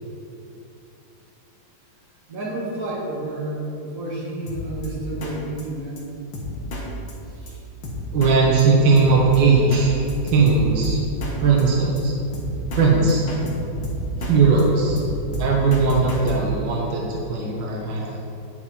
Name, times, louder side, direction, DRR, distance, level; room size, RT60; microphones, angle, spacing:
voice 1, 2.3-6.0 7.4-7.6, right 1 dB, 45° right, -5 dB, 2.5 m, -30 dB
Drum kit, 4.5-4.9 5.2-5.3 5.6-5.7 6.0-6.1 6.3-6.8 7.1-7.2 7.5-7.6 7.8-8.3 8.6-8.7 9.0-9.8 10.1-11.3 11.6-11.7 12.0-12.1 12.3-12.8 13.1-14.3 14.6-16.3, left 1 dB, 80° left, 2.1 m, -30 dB
sound 1, 7.1-17.0, right 5 dB, 45° left, 1.1 m, -39 dB
voice 2, 8.1-11.0 11.4-12.1 12.7-13.2 14.2-15.0 15.4-18.1, right 4 dB, 85° right, -2 dB, 1.9 m, -18 dB
9.1 x 9.0 x 4.4 m, 2.8 s
omnidirectional pair, 2.0 m